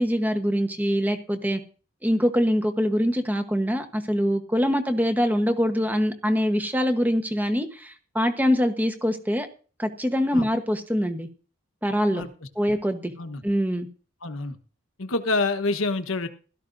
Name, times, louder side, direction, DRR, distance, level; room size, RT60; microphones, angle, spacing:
voice 1, 0.0-1.6 2.0-9.5 9.8-11.3 11.8-12.3 12.6-13.1 13.4-13.9, equal, 10° right, 7 dB, 1.0 m, -24 dB
voice 2, 14.2-14.6 15.0-16.3, left 3 dB, 70° left, 9 dB, 1.1 m, -27 dB
16.5 x 13.0 x 2.6 m, 0.38 s
head